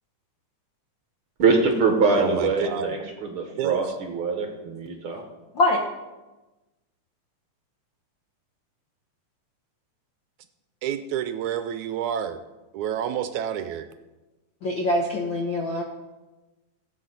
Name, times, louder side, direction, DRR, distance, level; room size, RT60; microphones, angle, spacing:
voice 1, 1.4-5.2, right 4 dB, 55° right, 3 dB, 1.6 m, -23 dB
voice 2, 2.2-3.3 3.6-3.9 10.8-12.4 12.7-13.9, right 9 dB, 80° right, 10 dB, 1.8 m, -29 dB
voice 3, 14.6-15.8, left 2 dB, 65° left, 0 dB, 1.2 m, -23 dB
16.5 x 8.9 x 3.9 m, 1.1 s
omnidirectional pair, 3.6 m